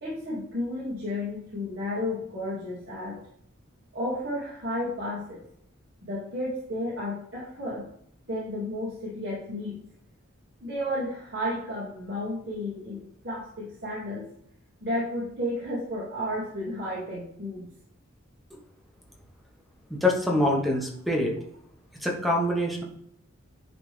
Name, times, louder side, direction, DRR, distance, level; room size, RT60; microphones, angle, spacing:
voice 1, 0.0-3.2 3.9-5.4 6.0-7.8 8.3-9.8 10.6-14.2 14.8-17.7, left 1 dB, 55° right, -8 dB, 2.4 m, -32 dB
voice 2, 19.9-21.3 22.0-22.8, left 1 dB, ahead, -1 dB, 1.3 m, -25 dB
10.5 x 3.6 x 3.4 m, 0.68 s
head